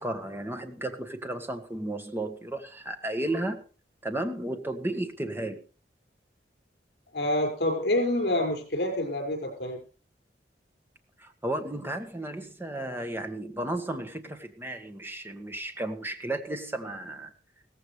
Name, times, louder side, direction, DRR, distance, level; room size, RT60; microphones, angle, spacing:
voice 1, 0.0-3.6 4.0-5.6 11.2-17.3, right 1 dB, 15° right, 6 dB, 1.6 m, -33 dB
voice 2, 7.1-9.8, left 1 dB, 65° left, 4 dB, 5.8 m, -27 dB
17.0 x 15.0 x 3.3 m, 0.37 s
head